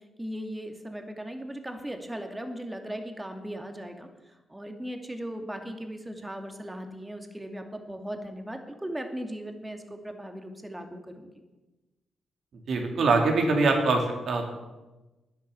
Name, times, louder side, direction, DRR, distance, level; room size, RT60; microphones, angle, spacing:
voice 1, 0.2-4.1 4.5-11.3, equal, 15° right, 5 dB, 2.5 m, -38 dB
voice 2, 12.7-14.5, right 3 dB, 60° right, 2 dB, 3.0 m, -23 dB
10.5 x 10.0 x 8.3 m, 1.1 s
hypercardioid pair, 40°, 0 cm